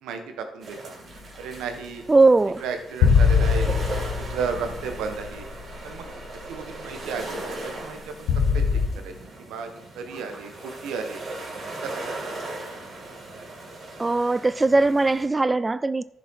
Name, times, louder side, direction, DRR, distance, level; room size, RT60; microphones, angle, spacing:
voice 1, 0.0-0.9 1.4-2.0 2.6-3.7 4.3-5.5 5.8-6.1 6.3-8.3 8.5-8.6 8.9-11.2 11.8-12.1, right 5 dB, 90° right, 1.5 m, -34 dB
sound 1, 0.6-15.3, right 2 dB, 50° right, 3.4 m, -38 dB
voice 2, 2.1-2.6 14.0-16.0, right 3 dB, 20° right, 0.3 m, -19 dB
sound 2, 3.0-5.8 6.2-6.3 8.3-8.9, left 6 dB, 85° left, 1.3 m, -21 dB
11.0 x 6.9 x 4.8 m
cardioid pair, 90°, 0 cm